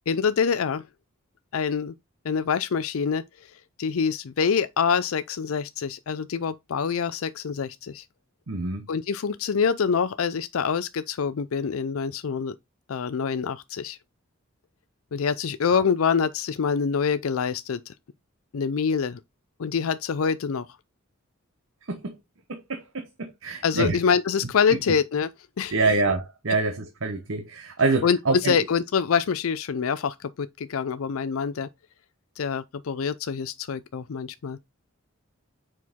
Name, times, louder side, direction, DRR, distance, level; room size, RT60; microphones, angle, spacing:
voice 1, 0.1-0.8 1.5-1.9 2.2-3.2 3.8-8.0 8.9-12.5 12.9-14.0 15.1-17.9 18.5-19.2 19.6-20.7 23.6-25.3 25.6-25.8 28.0-31.7 32.4-34.6, left 6 dB, 85° left, 0.5 m, -25 dB
voice 2, 8.5-8.8 15.7-15.8 21.9-22.1 22.5-24.0 25.7-28.6, right 3 dB, 70° right, 1.0 m, -26 dB
6.2 x 4.6 x 3.6 m
head